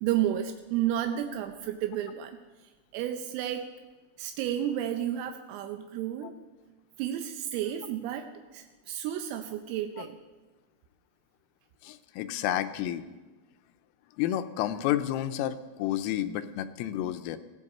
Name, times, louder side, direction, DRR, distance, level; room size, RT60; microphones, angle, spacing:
voice 1, 0.0-2.4 2.9-3.7 4.2-6.4 7.0-10.2, right 11 dB, 85° right, 6 dB, 3.5 m, -32 dB
voice 2, 11.8-13.1 14.2-17.4, left 12 dB, 85° left, 10 dB, 3.3 m, -30 dB
19.5 x 15.0 x 4.3 m, 1.2 s
omnidirectional pair, 5.9 m